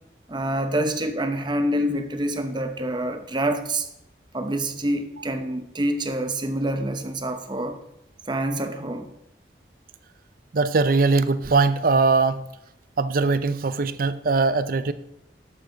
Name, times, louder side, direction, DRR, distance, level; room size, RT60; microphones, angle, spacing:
voice 1, 0.3-3.9 4.3-7.8 8.3-9.1, right 1 dB, 25° right, 0.8 m, -26 dB
voice 2, 10.5-12.4 13.0-14.9, right 3 dB, 55° right, 0.5 m, -21 dB
11.5 x 7.3 x 3.9 m
head